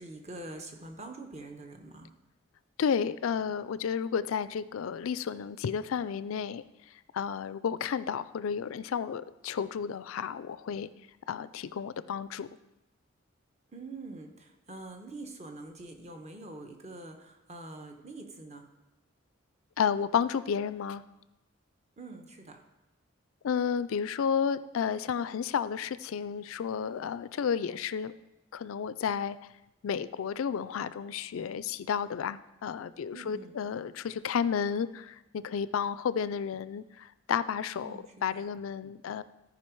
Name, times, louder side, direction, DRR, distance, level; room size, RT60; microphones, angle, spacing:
voice 1, 0.0-2.1 13.7-18.7 22.0-22.6 33.1-33.6 37.7-38.5, right 2 dB, 30° right, 4 dB, 1.0 m, -45 dB
voice 2, 2.8-6.6 7.1-10.9 11.3-12.5 19.8-21.0 23.4-28.1 28.5-29.4 29.8-39.2, left 7 dB, 80° left, 16 dB, 0.4 m, -32 dB
13.5 x 5.0 x 4.6 m, 0.97 s
head